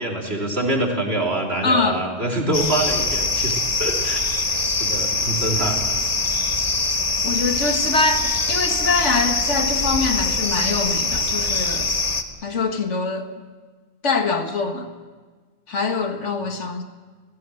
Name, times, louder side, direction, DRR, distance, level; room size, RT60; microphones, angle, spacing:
voice 1, 0.0-4.2 4.8-5.8, right 1 dB, 60° right, 3.5 m, -25 dB
voice 2, 1.6-2.0 7.2-11.9 12.4-13.3 14.0-14.9 15.7-16.8, left 4 dB, 85° left, 2.0 m, -23 dB
sound 1, 2.5-12.2, left 3 dB, 35° left, 1.4 m, -23 dB
30.0 x 15.5 x 7.7 m
omnidirectional pair, 1.2 m